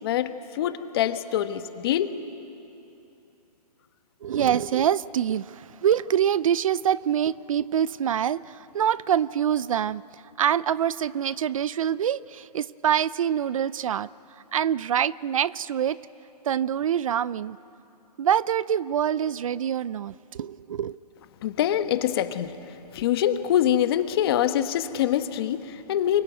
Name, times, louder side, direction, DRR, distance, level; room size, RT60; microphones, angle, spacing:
voice 1, 0.0-2.2 21.4-26.2, left 11 dB, 35° left, 10 dB, 1.2 m, -25 dB
voice 2, 4.2-16.0 16.4-17.6 18.2-21.0, right 9 dB, 55° right, 20 dB, 0.5 m, -25 dB
24.5 x 23.0 x 9.2 m, 2.8 s
hypercardioid pair, 160°, 21 cm